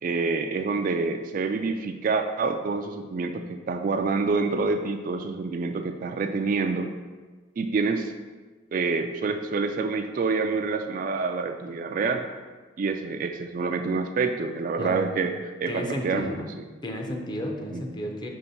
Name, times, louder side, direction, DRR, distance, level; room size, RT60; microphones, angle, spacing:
voice 1, 0.0-6.9 7.6-8.1 8.7-12.3 12.8-15.3 15.6-16.3 17.7-17.8, right 4 dB, 45° right, 6 dB, 0.3 m, -27 dB
voice 2, 15.7-16.5 16.8-18.3, equal, 20° left, 1 dB, 0.6 m, -32 dB
5.7 x 3.0 x 5.5 m, 1.3 s
head